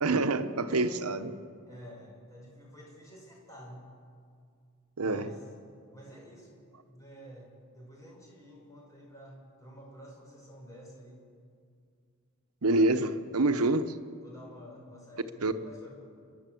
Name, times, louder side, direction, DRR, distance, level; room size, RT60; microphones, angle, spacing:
voice 1, 0.0-1.3 5.0-5.3 12.6-13.9 15.4-15.5, right 2 dB, 90° right, 10 dB, 1.0 m, -26 dB
voice 2, 1.7-3.9 5.0-5.4 5.9-11.2 13.5-13.8 14.1-15.9, equal, 15° left, -2 dB, 5.7 m, -50 dB
30.0 x 11.5 x 7.7 m, 2.3 s
head